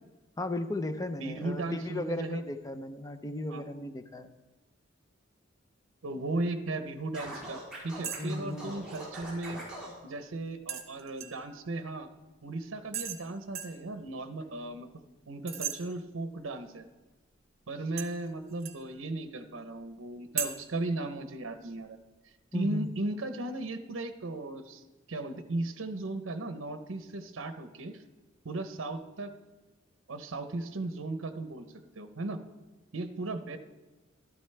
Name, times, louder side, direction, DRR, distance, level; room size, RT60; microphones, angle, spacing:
voice 1, 0.4-4.3 8.2-8.7 22.5-22.9, left 2 dB, 20° left, 9 dB, 0.5 m, -36 dB
voice 2, 1.2-2.4 3.5-3.6 6.0-7.6 7.8-9.6 10.0-12.1 12.4-14.9 15.3-16.8 17.7-22.0 22.5-28.0 28.4-29.3 30.1-31.7 32.0-32.4 32.9-33.6, right 2 dB, 70° right, 9 dB, 0.8 m, -36 dB
Scratching (performance technique), 7.1-9.9, right 1 dB, 5° right, 4.7 m, -42 dB
sound 1, 8.0-8.2 8.5-9.0 10.7-11.5 12.9-13.2 13.5-13.8 15.5-15.8 18.0-18.8 20.4-20.5, right 8 dB, 55° right, 1.1 m, -36 dB
12.5 x 12.0 x 3.3 m, 1.2 s
head